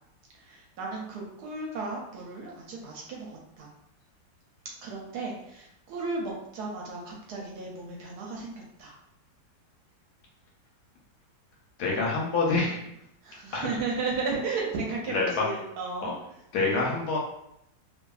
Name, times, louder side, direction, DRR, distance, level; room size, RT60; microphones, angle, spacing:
voice 1, 0.5-3.7 4.8-8.9 13.2-16.2, right 3 dB, 70° right, -2 dB, 1.0 m, -34 dB
voice 2, 11.8-12.8 13.5-13.7 15.1-15.4 16.0-16.1 16.5-17.2, left 3 dB, 70° left, -2 dB, 1.0 m, -26 dB
2.7 x 2.5 x 2.2 m, 0.79 s
omnidirectional pair, 1.9 m